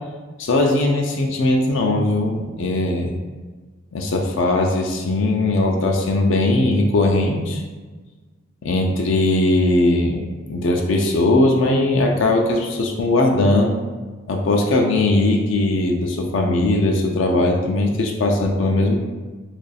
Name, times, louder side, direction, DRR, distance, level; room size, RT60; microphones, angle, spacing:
voice 1, 0.4-3.1 3.9-7.6 8.6-13.7 14.3-19.0, left 2 dB, 70° left, 1 dB, 0.4 m, -19 dB
3.0 x 2.5 x 4.0 m, 1.3 s
head